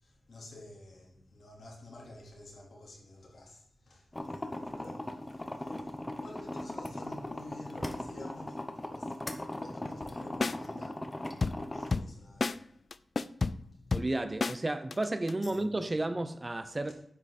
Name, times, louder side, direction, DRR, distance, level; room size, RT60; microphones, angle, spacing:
voice 1, 0.0-12.6 15.4-15.7 16.9-17.0, left 1 dB, 70° left, 3.8 m, -50 dB
sound 1, 4.1-11.9, left 1 dB, 15° left, 1.0 m, -39 dB
sound 2, 10.0-10.2 10.4-10.6 11.4-12.2 12.4-12.6 12.9-14.6 14.9-15.5, left 4 dB, 50° left, 0.4 m, -31 dB
voice 2, 13.9-16.9, right 2 dB, 25° right, 0.7 m, -32 dB
10.0 x 8.4 x 4.3 m
wide cardioid pair, 110°, 0 cm